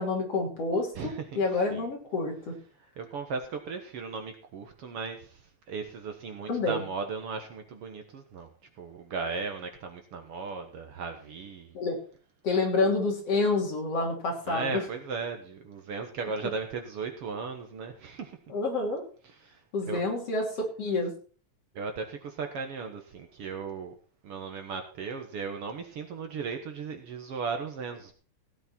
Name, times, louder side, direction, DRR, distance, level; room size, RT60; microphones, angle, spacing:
voice 1, 0.0-2.6 6.5-6.8 11.7-12.0 12.4-14.8 18.5-19.0 19.7-21.1, left 3 dB, 55° left, 0 dB, 4.2 m, -28 dB
voice 2, 1.0-1.4 1.7-1.9 3.0-5.4 5.7-8.5 8.8-11.7 14.5-18.4 19.4-19.6 19.9-20.0 21.7-24.0 24.2-28.1, right 5 dB, 60° right, 5 dB, 2.1 m, -36 dB
16.5 x 9.0 x 4.4 m, 0.40 s
omnidirectional pair, 3.3 m